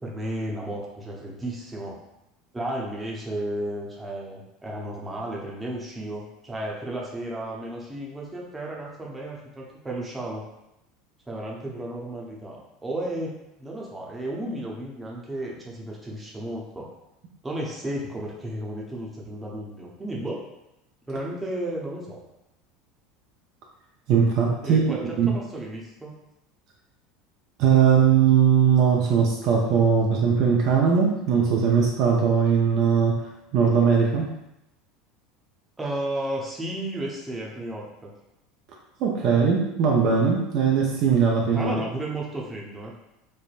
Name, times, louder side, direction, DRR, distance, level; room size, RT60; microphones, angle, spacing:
voice 1, 0.0-2.0 2.5-10.4 11.3-12.6 12.8-13.3 13.6-16.9 17.4-20.4 21.1-22.2 24.6-26.1 35.8-38.1 41.5-42.9, right 1 dB, 15° right, -3 dB, 0.8 m, -33 dB
voice 2, 24.1-25.3 27.6-33.2 33.5-34.3 39.0-41.7, right 6 dB, 55° right, -1 dB, 0.5 m, -20 dB
3.3 x 2.0 x 2.4 m, 0.87 s
hypercardioid pair, 80°, 0 cm